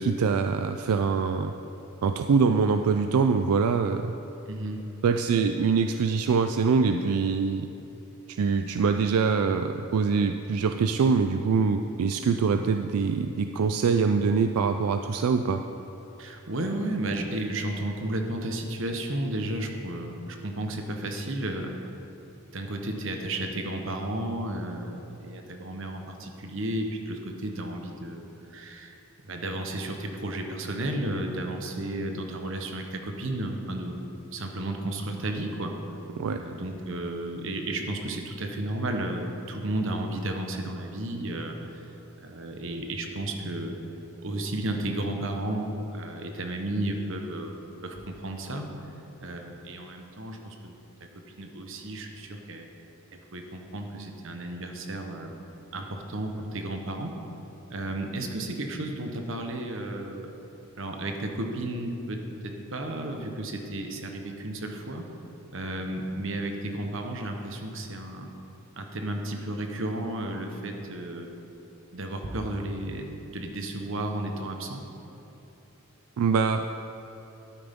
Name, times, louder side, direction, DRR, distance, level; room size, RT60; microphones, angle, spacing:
voice 1, 0.0-1.5 2.0-4.1 5.0-7.7 8.3-15.6 36.2-36.4 76.2-76.7, right 5 dB, 85° right, 7 dB, 0.4 m, -24 dB
voice 2, 4.5-4.9 16.2-21.7 22.5-28.3 28.5-29.0 29.2-34.0 34.3-35.8 36.3-41.6 42.2-43.8 44.2-48.7 49.2-50.7 51.4-52.7 53.3-55.3 55.7-57.2 57.7-60.3 60.8-65.1 65.5-68.3 68.8-71.3 71.9-74.8, right 1 dB, 60° right, 4 dB, 1.0 m, -33 dB
12.5 x 9.5 x 3.6 m, 3.0 s
head